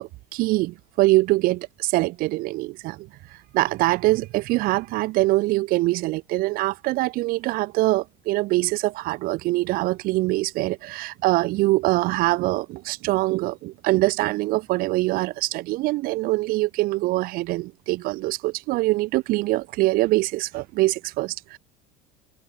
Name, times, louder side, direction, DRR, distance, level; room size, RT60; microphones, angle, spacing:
voice 1, 0.0-3.1 3.5-21.6, right 20 dB, 60° right, 6.5 m, -23 dB
open air
supercardioid pair, 130°, 17 cm